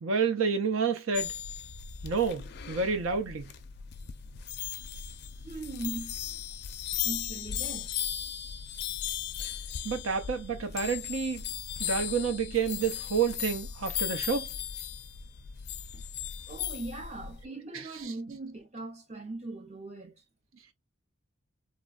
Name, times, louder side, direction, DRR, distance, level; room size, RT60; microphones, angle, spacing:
voice 1, 0.0-1.3 2.0-3.5 9.4-9.5 9.8-11.4 11.8-14.5 17.7-17.8, right 5 dB, 75° right, 0.6 m, -29 dB
sound 1, 1.1-17.5, left 9 dB, 50° left, 0.4 m, -37 dB
voice 2, 5.4-6.2 7.0-7.9 15.9-16.0 16.5-20.2, right 2 dB, 30° right, 0.6 m, -40 dB
3.0 x 2.2 x 2.3 m
head